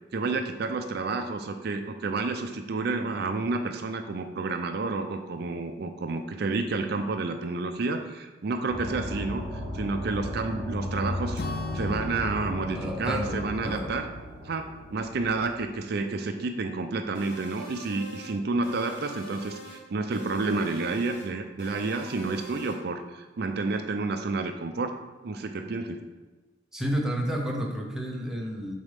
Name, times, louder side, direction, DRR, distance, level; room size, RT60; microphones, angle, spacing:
voice 1, 0.1-14.0 14.4-24.9 25.2-26.0, right 3 dB, 60° right, 6 dB, 0.4 m, -30 dB
sound 1, 8.7-15.8, left 1 dB, 30° left, 1.0 m, -36 dB
Acoustic guitar / Strum, 11.4-15.3, left 5 dB, 55° left, 0.4 m, -41 dB
voice 2, 12.7-13.9 26.7-28.7, equal, 5° right, -2 dB, 0.9 m, -31 dB
sound 2, 17.1-18.3 18.6-19.8 20.1-21.3 21.6-22.8, right 1 dB, 80° left, 1.5 m, -44 dB
7.2 x 4.1 x 3.4 m, 1.2 s
head